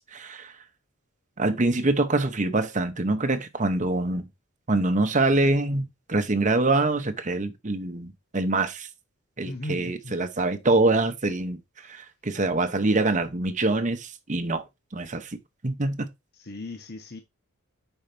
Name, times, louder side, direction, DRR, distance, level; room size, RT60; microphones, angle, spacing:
voice 1, 0.1-0.5 1.4-4.2 4.7-8.9 9.4-14.6 14.9-15.4 15.6-16.1, right 2 dB, 35° right, 0.9 m, -25 dB
voice 2, 9.4-10.1 16.4-17.2, left 1 dB, 45° left, 1.1 m, -36 dB
5.6 x 4.5 x 5.2 m
head